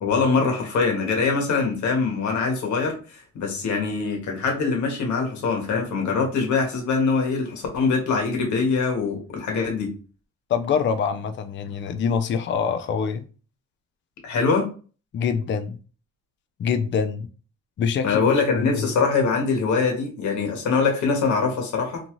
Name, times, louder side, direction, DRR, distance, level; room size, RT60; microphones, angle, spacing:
voice 1, 0.0-2.9 3.3-9.9 14.2-14.7 18.0-22.0, left 4 dB, 70° left, 1.2 m, -23 dB
voice 2, 10.5-13.3 15.1-15.8 16.6-17.3 17.8-18.9, left 6 dB, 40° left, 0.4 m, -25 dB
2.7 x 2.3 x 2.9 m
cardioid pair, 90°, 30 cm